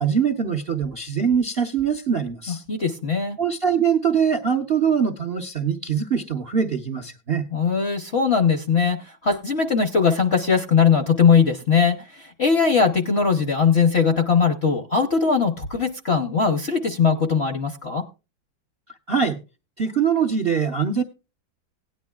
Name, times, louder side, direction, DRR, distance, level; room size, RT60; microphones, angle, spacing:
voice 1, 0.0-2.6 3.4-7.5 19.1-19.4 19.8-21.0, right 7 dB, 50° right, 6 dB, 0.7 m, -23 dB
voice 2, 2.5-3.4 7.5-18.0, left 6 dB, 50° left, 6 dB, 0.8 m, -20 dB
17.5 x 10.0 x 2.3 m, 0.29 s
omnidirectional pair, 2.1 m